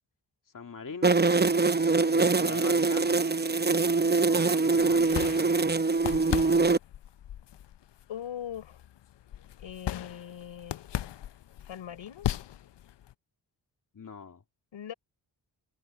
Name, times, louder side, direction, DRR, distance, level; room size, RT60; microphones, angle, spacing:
voice 1, 0.5-1.2 2.1-3.2 4.3-5.6 13.9-14.4, left 5 dB, 45° left, 2.2 m, -42 dB
sound 1, 1.0-6.8, right 3 dB, 20° right, 0.8 m, -24 dB
voice 2, 4.0-4.4 8.1-8.8 9.6-10.8 11.7-12.3 14.7-14.9, left 10 dB, 85° left, 4.6 m, -41 dB
sound 2, 4.7-13.1, left 12 dB, 65° left, 0.7 m, -38 dB
cardioid pair, 50°, 45 cm